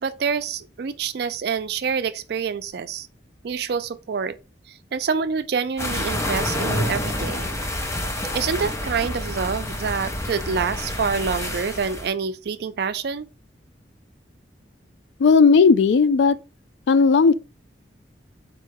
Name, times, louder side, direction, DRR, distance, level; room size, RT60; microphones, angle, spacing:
voice 1, 0.0-3.1 3.4-4.4 4.9-7.6 8.3-13.3, right 6 dB, 60° right, 0.4 m, -26 dB
sound 1, 5.8-12.1, left 1 dB, 15° left, 0.6 m, -28 dB
voice 2, 15.2-16.4 16.9-17.3, left 5 dB, 75° left, 0.3 m, -15 dB
4.2 x 2.2 x 4.6 m
head